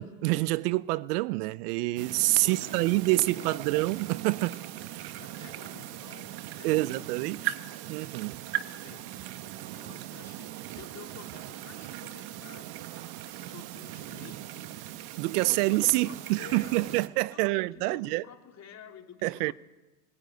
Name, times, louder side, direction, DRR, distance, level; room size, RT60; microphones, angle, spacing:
voice 1, 0.0-4.6 4.9-5.1 6.6-7.6 7.9-8.3 15.2-18.2 19.2-19.5, right 20 dB, 70° right, 0.7 m, -27 dB
sound 1, 2.0-17.1, right 14 dB, 55° right, 1.3 m, -39 dB
voice 2, 2.4-3.7 5.1-7.4 7.7-8.0 8.6-9.3 9.6-13.0 13.4-14.7 15.3-17.0 17.3-19.5, left 7 dB, 35° left, 3.8 m, -51 dB
21.5 x 15.5 x 9.2 m
supercardioid pair, 110°, 47 cm